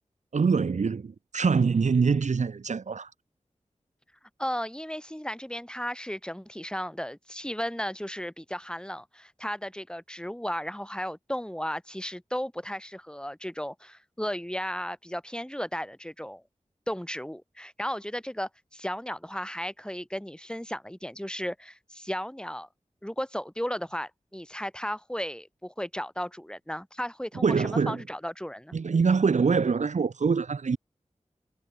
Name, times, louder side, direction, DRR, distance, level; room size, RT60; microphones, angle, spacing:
voice 1, 0.3-3.1 27.3-28.0 28.7-30.8, right 5 dB, 75° right, 0.9 m, -24 dB
voice 2, 4.4-16.4 16.9-22.7 23.0-28.8, equal, 5° left, 6.8 m, -35 dB
wide cardioid pair, 50°, 12 cm